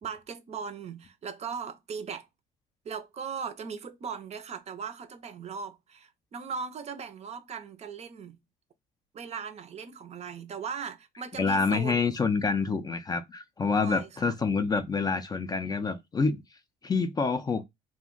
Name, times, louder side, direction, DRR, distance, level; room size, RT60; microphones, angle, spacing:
voice 1, 0.0-2.3 2.8-8.4 9.1-12.0 13.8-14.3, right 6 dB, 40° right, 0.5 m, -38 dB
voice 2, 11.4-16.4 16.8-17.6, left 4 dB, 25° left, 0.4 m, -27 dB
2.4 x 2.1 x 3.7 m
cardioid pair, 110°, 17 cm